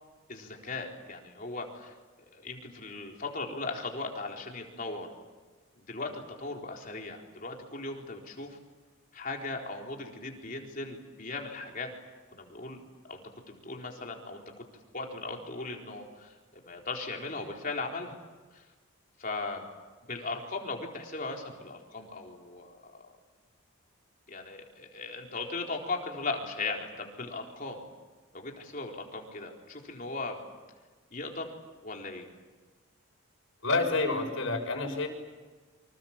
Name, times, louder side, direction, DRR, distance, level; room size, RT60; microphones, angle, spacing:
voice 1, 0.3-1.9 2.3-5.1 5.8-8.6 9.1-11.9 12.3-12.8 13.1-14.4 14.9-18.1 18.5-18.6 19.2-19.7 20.1-23.0 24.3-27.9 28.3-30.4 31.1-31.5 31.8-32.3, left 3 dB, 40° left, 1 dB, 4.2 m, -38 dB
voice 2, 33.6-35.1, left 3 dB, 65° left, 2 dB, 6.6 m, -28 dB
29.0 x 26.0 x 7.5 m, 1.3 s
head